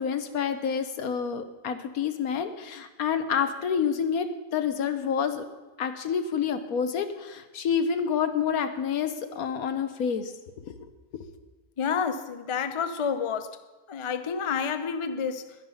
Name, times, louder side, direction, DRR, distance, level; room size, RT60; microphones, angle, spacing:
voice 1, 0.0-5.4 5.8-10.6, left 7 dB, 80° left, 1.4 m, -28 dB
voice 2, 11.8-13.6 13.9-15.6, left 6 dB, 40° left, 0.4 m, -29 dB
11.5 x 10.5 x 5.6 m
omnidirectional pair, 1.5 m